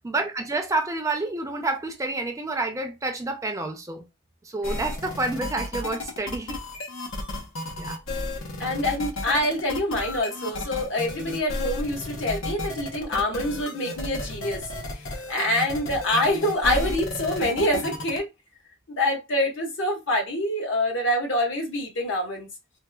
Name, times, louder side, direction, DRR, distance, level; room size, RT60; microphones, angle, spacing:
voice 1, 0.0-4.0 4.4-6.6 7.8-8.0, right 2 dB, 15° right, 0.4 m, -29 dB
sound 1, 4.6-18.2, left 1 dB, 90° left, 0.9 m, -33 dB
voice 2, 8.6-14.6 15.3-18.3 18.9-22.5, left 1 dB, 65° left, 1.2 m, -26 dB
4.2 x 2.2 x 2.2 m
head